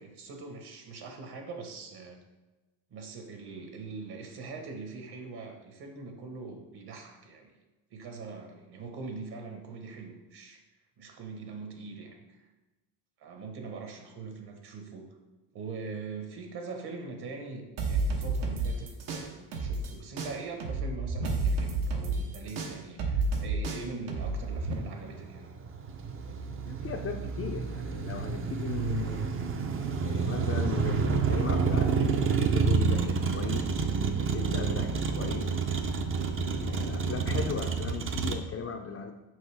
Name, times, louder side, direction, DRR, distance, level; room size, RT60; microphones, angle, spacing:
voice 1, 0.0-2.2 2.9-7.6 7.9-10.6 11.0-12.2 13.2-15.1 15.5-25.5, right 4 dB, 55° right, 3 dB, 1.2 m, -42 dB
sound 1, 17.8-19.9 20.2-24.7, right 3 dB, 75° right, 1.1 m, -30 dB
Motor vehicle (road), 24.3-38.3, right 5 dB, 30° right, 0.4 m, -29 dB
voice 2, 26.7-29.3 30.0-33.7 34.2-35.5 36.5-39.1, left 6 dB, 35° left, 3 dB, 0.4 m, -37 dB
6.3 x 4.5 x 3.3 m, 1.1 s
cardioid pair, 110°, 48 cm